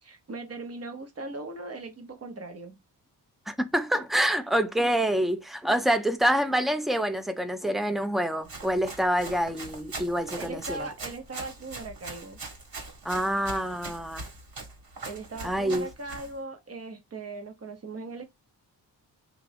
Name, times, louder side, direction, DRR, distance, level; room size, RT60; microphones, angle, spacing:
voice 1, 0.0-2.8 10.4-12.4 13.5-13.6 15.0-18.2, right 3 dB, 35° right, 1.0 m, -39 dB
voice 2, 3.5-10.9 13.0-14.3 15.4-15.9, equal, ahead, 0.5 m, -26 dB
Run, 8.4-16.4, right 3 dB, 55° right, 1.5 m, -41 dB
3.3 x 2.5 x 3.4 m
cardioid pair, 95°, 40 cm